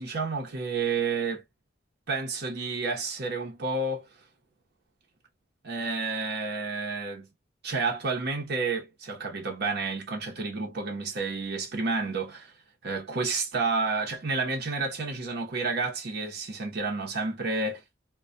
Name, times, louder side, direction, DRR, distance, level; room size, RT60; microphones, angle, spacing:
voice 1, 0.0-1.4 2.1-4.1 5.6-7.3 7.6-12.5 12.8-17.8, right 4 dB, 55° right, 0.8 m, -30 dB
2.3 x 2.2 x 2.5 m
head